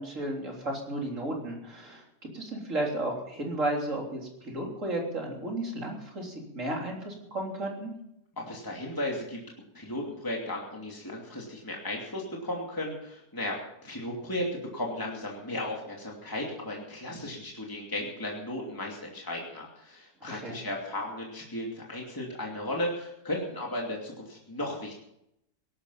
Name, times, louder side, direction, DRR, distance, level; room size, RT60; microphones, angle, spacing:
voice 1, 0.0-7.9 20.2-20.6, right 1 dB, 50° right, 0 dB, 3.9 m, -33 dB
voice 2, 8.4-9.4 9.7-13.6 13.8-25.0, left 1 dB, 15° left, -2 dB, 2.7 m, -35 dB
17.5 x 12.5 x 5.7 m, 0.79 s
omnidirectional pair, 1.7 m